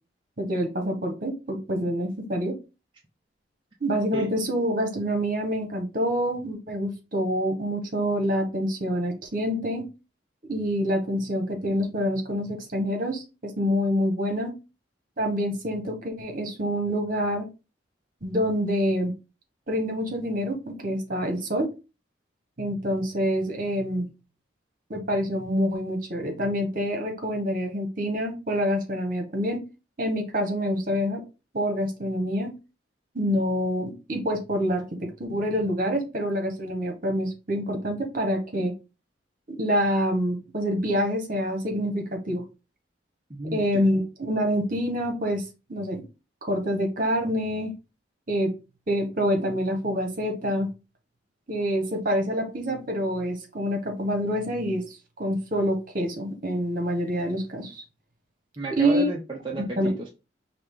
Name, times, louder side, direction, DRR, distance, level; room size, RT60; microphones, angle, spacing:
voice 1, 0.4-2.5 3.8-9.8 10.5-14.5 15.2-17.4 18.2-19.1 19.7-21.7 22.6-24.1 24.9-29.6 30.0-31.2 31.5-32.5 33.1-38.7 39.5-42.4 43.4-46.0 46.4-47.7 48.3-48.5 48.9-50.7 51.5-57.8 58.7-59.1 59.6-59.9, equal, 45° right, 3 dB, 1.3 m, -26 dB
voice 2, 43.3-43.8 58.6-60.1, right 2 dB, 25° right, -2 dB, 0.6 m, -33 dB
5.0 x 2.9 x 3.7 m, 0.29 s
head